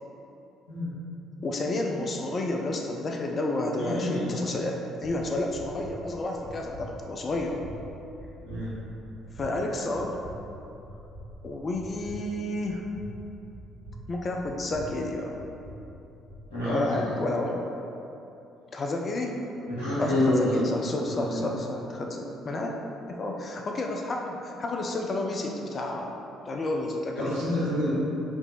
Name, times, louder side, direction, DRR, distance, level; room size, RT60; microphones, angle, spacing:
voice 1, 1.4-7.6 9.4-10.2 11.4-12.8 14.1-15.4 16.6-17.7 18.7-19.3 20.0-22.7 23.1-26.2 26.5-27.4, left 2 dB, 35° left, 1 dB, 0.4 m, -31 dB
voice 2, 3.8-4.5 8.4-8.7 16.5-17.1 19.7-20.6 21.1-21.6 27.2-27.9, left 1 dB, 75° left, -13 dB, 1.0 m, -28 dB
sound 1, 5.0-16.5, equal, 15° right, 1.2 m, -45 dB
4.5 x 2.7 x 4.0 m, 2.9 s
figure-of-eight pair, 50°, 0 cm